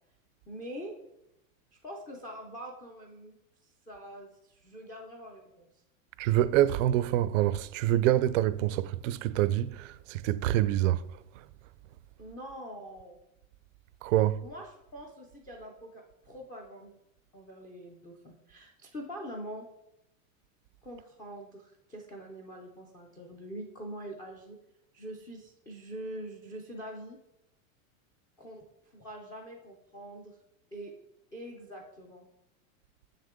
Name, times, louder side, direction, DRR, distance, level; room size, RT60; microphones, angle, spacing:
voice 1, 0.5-0.9 1.8-3.3 3.9-5.7 12.2-13.2 14.4-16.9 17.3-19.6 20.8-24.6 24.9-27.2 28.4-28.6 28.9-30.4 30.7-30.9 31.3-32.3, right 1 dB, 10° left, 0.3 m, -44 dB
voice 2, 6.2-11.1 14.0-14.4, right 13 dB, 65° right, 0.5 m, -26 dB
7.2 x 6.5 x 3.6 m
supercardioid pair, 150°, 41 cm